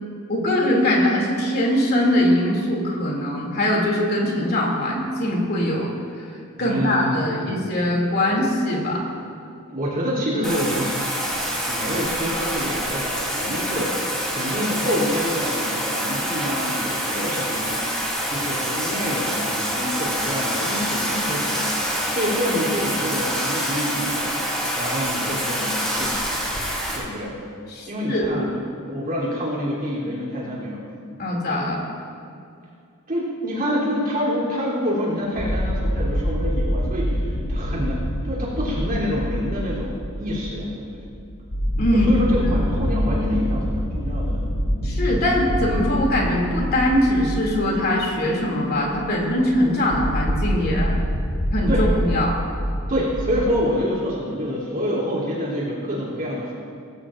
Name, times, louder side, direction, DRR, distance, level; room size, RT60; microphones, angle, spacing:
voice 1, 0.3-6.3 6.6-9.0 27.7-28.4 31.2-31.8 41.8-42.1 42.4-42.5 44.8-50.9 51.5-51.7 52.0-52.4, left 1 dB, 50° left, -2 dB, 2.8 m, -22 dB
voice 2, 6.6-7.7 9.7-11.1 11.7-24.4 24.7-26.3 26.9-27.3 27.9-30.8 33.1-41.0 41.9-44.4 51.7-51.9 52.9-56.5, equal, 40° right, -6 dB, 3.4 m, -27 dB
Bathtub (filling or washing), 10.4-27.0, equal, 5° left, 3.5 m, -26 dB
sound 1, 35.4-53.5, equal, 70° left, 1.4 m, -26 dB
19.0 x 16.0 x 2.6 m, 2.4 s
head